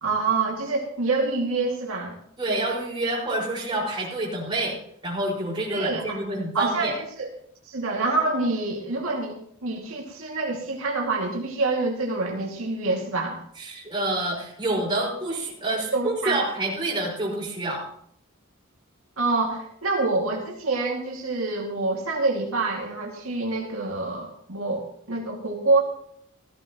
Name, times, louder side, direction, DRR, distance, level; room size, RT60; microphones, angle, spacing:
voice 1, 0.0-2.2 5.7-6.2 6.5-7.3 7.6-9.3 9.6-13.4 15.7-16.4 19.2-25.8, right 3 dB, 80° right, -1 dB, 2.4 m, -26 dB
voice 2, 2.4-4.8 5.0-6.9 13.6-17.8, right 2 dB, 25° right, -4 dB, 5.3 m, -27 dB
16.5 x 14.5 x 3.1 m, 0.68 s
head